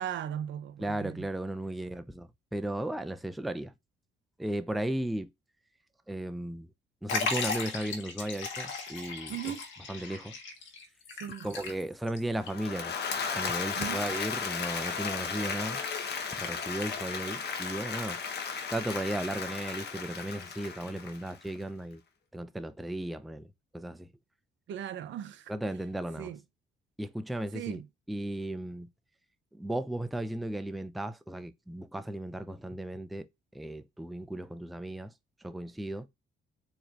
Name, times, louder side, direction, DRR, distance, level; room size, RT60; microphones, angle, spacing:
voice 1, 0.0-1.3 9.3-9.6 11.2-11.5 13.8-14.1 24.7-25.5 26.2-26.4 27.5-27.9, right 10 dB, 70° right, 0.6 m, -38 dB
voice 2, 0.8-3.7 4.4-5.3 6.1-6.7 7.0-9.5 9.9-10.4 11.4-13.0 13.3-15.8 16.3-18.2 18.7-22.0 22.3-24.1 25.5-26.3 27.0-27.8 28.1-28.9 29.5-33.3 33.5-35.1 35.4-36.1, right 1 dB, ahead, 0.4 m, -35 dB
Liquid, 7.1-12.2 12.5-12.6 13.5-13.6, left 4 dB, 75° left, 1.3 m, -36 dB
Applause / Crowd, 12.4-21.6, left 6 dB, 55° left, 1.1 m, -35 dB
4.2 x 3.1 x 2.5 m
cardioid pair, 90°, 20 cm